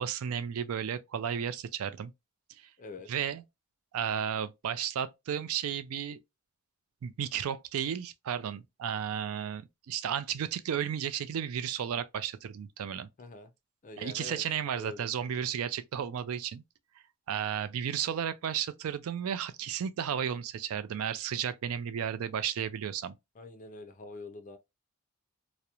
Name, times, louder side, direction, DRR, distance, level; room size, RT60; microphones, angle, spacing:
voice 1, 0.0-2.1 3.1-3.4 3.9-6.2 7.0-13.1 14.0-16.6 17.3-23.1, right 8 dB, 70° right, 0.3 m, -33 dB
voice 2, 2.8-3.1 13.2-13.5 13.8-14.4 14.7-15.1 23.3-24.6, left 2 dB, 35° left, 0.4 m, -44 dB
2.9 x 2.0 x 2.3 m
head